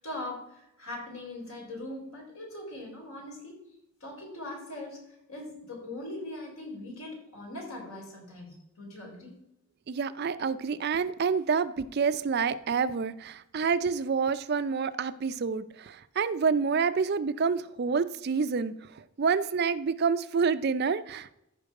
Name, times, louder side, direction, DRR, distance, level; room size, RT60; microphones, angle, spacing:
voice 1, 0.0-3.6 4.0-9.3, left 1 dB, 75° left, -1 dB, 4.0 m, -41 dB
voice 2, 9.9-21.3, right 5 dB, 45° right, 13 dB, 0.4 m, -28 dB
14.5 x 5.2 x 4.7 m, 0.85 s
head